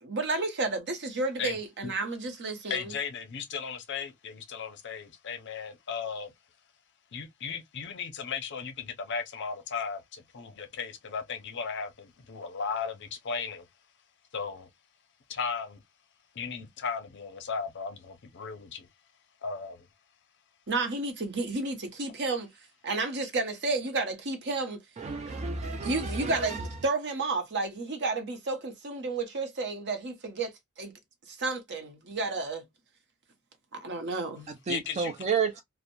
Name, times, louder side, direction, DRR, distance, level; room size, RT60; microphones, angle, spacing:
voice 1, 0.0-2.9 20.7-22.5 22.8-24.8 25.8-30.9 31.3-32.6 33.7-34.5, right 3 dB, 50° right, 0.7 m, -31 dB
voice 2, 1.4-1.9 2.7-6.3 7.1-13.6 14.3-14.7 15.3-15.8 16.4-18.9 19.4-19.9 34.7-35.1, left 5 dB, 55° left, 0.5 m, -36 dB
voice 3, 25.0-26.6 34.7-35.6, right 5 dB, 30° right, 0.3 m, -31 dB
2.8 x 2.1 x 2.5 m
head